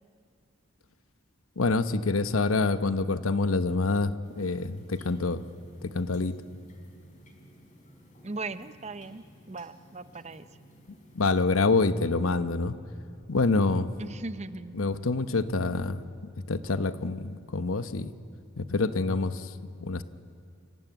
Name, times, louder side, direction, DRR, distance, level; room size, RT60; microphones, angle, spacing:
voice 1, 1.6-5.4 5.8-6.4 11.1-12.7 13.3-13.9 14.7-16.0 16.5-18.1 18.6-19.5 19.8-20.0, left 3 dB, 85° left, 12 dB, 1.0 m, -26 dB
sound 1, 4.2-11.4, equal, 40° left, 4.3 m, -55 dB
voice 2, 8.2-10.5 14.0-14.8, right 3 dB, 30° right, 13 dB, 0.7 m, -38 dB
28.0 x 15.5 x 9.2 m, 2.5 s
head